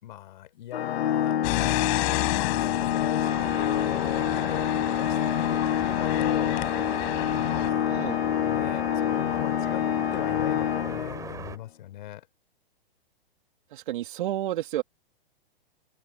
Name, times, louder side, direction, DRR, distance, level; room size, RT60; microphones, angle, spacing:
voice 1, 0.0-1.4 2.6-7.9 8.4-12.3, left 14 dB, 50° left, 5.3 m, -39 dB
Organ, 0.7-11.5, left 10 dB, 75° left, 1.5 m, -27 dB
sound 1, 1.4-7.7, left 36 dB, 35° left, 5.4 m, -32 dB
sound 2, 3.2-11.6, right 6 dB, 10° right, 3.2 m, -40 dB
voice 2, 7.9-8.2 13.7-14.8, right 13 dB, 55° right, 2.2 m, -30 dB
hypercardioid pair, 160°, 31 cm